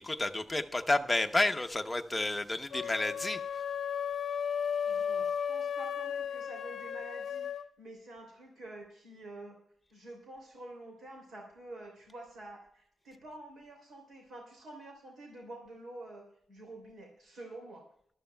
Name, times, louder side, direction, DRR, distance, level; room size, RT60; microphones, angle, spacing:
voice 1, 0.0-3.4, left 2 dB, 10° left, 5 dB, 0.8 m, -30 dB
sound 1, 2.7-7.7, left 7 dB, 60° left, 0.6 m, -34 dB
voice 2, 4.8-7.5 7.8-9.6 9.9-17.8, right 2 dB, 85° right, 1 dB, 2.9 m, -48 dB
22.0 x 13.0 x 2.2 m, 0.67 s
wide cardioid pair, 145°, 0 cm